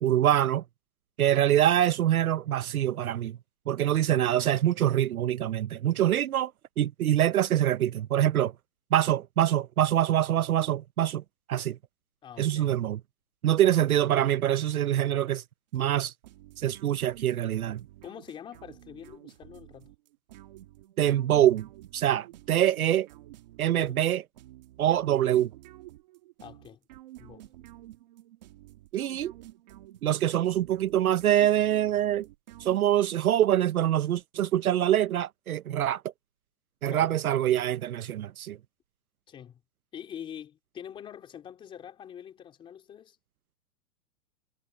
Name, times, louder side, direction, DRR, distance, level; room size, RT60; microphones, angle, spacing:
voice 1, 0.0-0.6 1.2-3.4 3.7-6.5 6.8-8.5 8.9-11.2 11.5-11.8 12.4-13.0 13.4-15.4 15.7-16.1 16.6-17.8 21.0-21.7 21.9-23.1 23.6-24.2 24.8-25.5 28.9-29.3 30.0-32.3 32.6-36.0 36.8-38.6, right 12 dB, 65° right, 0.7 m, -24 dB
voice 2, 12.2-12.7 18.0-19.9 23.8-24.0 26.4-26.8 27.2-27.5 36.9-37.1 39.3-39.6 39.9-43.2, left 9 dB, 10° left, 3.7 m, -45 dB
sound 1, 15.7-33.2, right 15 dB, 25° right, 1.4 m, -51 dB
hypercardioid pair, 170°, 46 cm